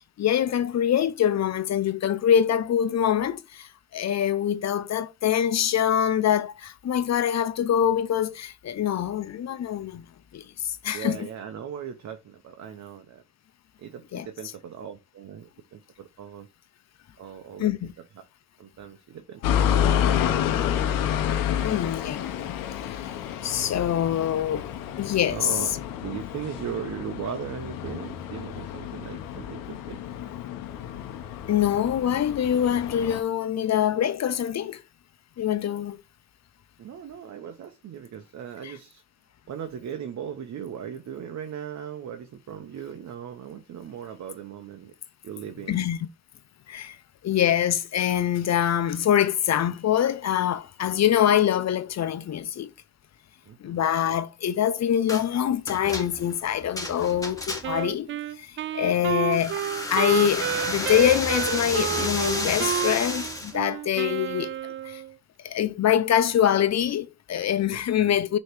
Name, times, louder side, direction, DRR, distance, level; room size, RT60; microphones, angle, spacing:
voice 1, 0.2-10.0 10.3-11.2 14.1-14.3 17.6-17.9 21.6-22.6 22.9-23.0 23.4-24.7 25.0-25.6 31.5-34.8 35.4-36.0 38.6-38.7 45.7-46.0 46.7-47.0 47.2-52.7 53.6-58.1 58.4-59.6 59.9-65.0 65.4-68.4, left 10 dB, 55° left, 0.9 m, -24 dB
voice 2, 10.9-13.2 13.8-16.5 17.2-17.7 18.6-20.0 20.2-20.8 25.3-25.7 26.0-30.0 36.8-39.0 39.5-44.9 45.2-45.9 53.5-53.9 59.0-59.1 67.7-68.1, right 8 dB, 55° right, 1.0 m, -38 dB
sound 1, 19.4-33.2, left 9 dB, 85° left, 0.9 m, -29 dB
sound 2, 55.1-55.3 55.7-57.9 59.3-63.6, left 1 dB, 10° left, 2.0 m, -32 dB
Wind instrument woodwind instrument, 57.6-65.1, right 10 dB, 40° right, 0.4 m, -30 dB
6.3 x 3.2 x 4.6 m
supercardioid pair, 60°, 33 cm